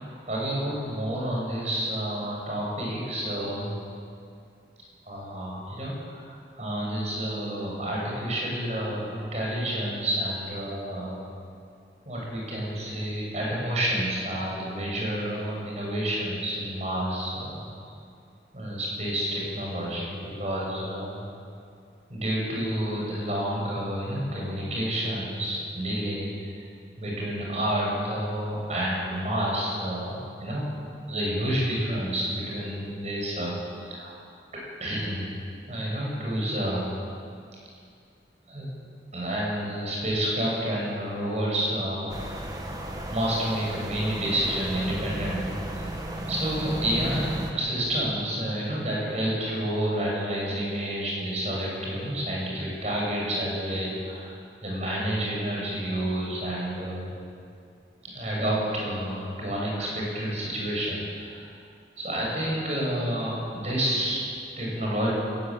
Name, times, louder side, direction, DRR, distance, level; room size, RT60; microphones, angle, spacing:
voice 1, 0.0-3.8 5.0-11.2 12.1-17.6 18.5-21.2 22.1-26.5 27.0-30.7 31.1-34.2 34.8-35.4 35.7-37.0 38.5-38.7 39.1-42.2 42.6-45.8 46.3-54.3 54.6-57.1 58.0-61.4 62.0-64.3 64.6-65.1, right 1 dB, 40° right, -3 dB, 7.5 m, -29 dB
sound 1, 42.1-47.5, right 1 dB, 20° right, 1.7 m, -34 dB
21.5 x 14.5 x 9.1 m, 2.3 s
head